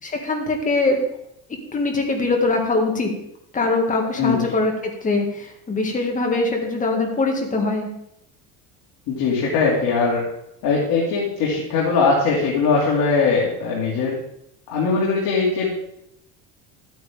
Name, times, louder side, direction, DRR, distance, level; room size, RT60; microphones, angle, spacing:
voice 1, 0.0-1.1 1.7-3.1 3.5-4.7 5.0-7.9, left 3 dB, 20° left, 2 dB, 2.0 m, -22 dB
voice 2, 4.2-4.5 9.1-10.3 10.6-14.2 14.7-15.7, left 4 dB, 60° left, -4 dB, 2.7 m, -20 dB
12.5 x 9.1 x 3.6 m, 0.77 s
cardioid pair, 135°, 36 cm